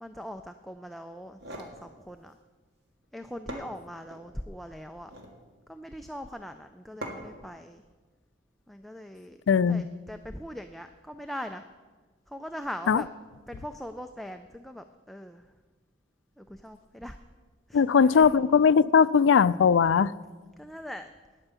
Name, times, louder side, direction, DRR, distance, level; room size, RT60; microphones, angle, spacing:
voice 1, 0.0-2.4 3.1-5.1 5.7-7.8 8.7-9.4 9.7-11.7 12.3-13.1 13.5-15.5 16.4-17.2 17.7-18.3 20.6-21.1, equal, ahead, 6 dB, 0.4 m, -41 dB
sound 1, 1.2-1.8 3.0-3.1 3.5-4.3 4.9-5.4 7.0-7.4, right 1 dB, 60° right, 2.0 m, -41 dB
voice 2, 9.5-9.8 12.9-13.0 17.7-20.1, left 6 dB, 85° left, 17 dB, 0.4 m, -20 dB
9.9 x 9.1 x 8.1 m, 1.3 s
head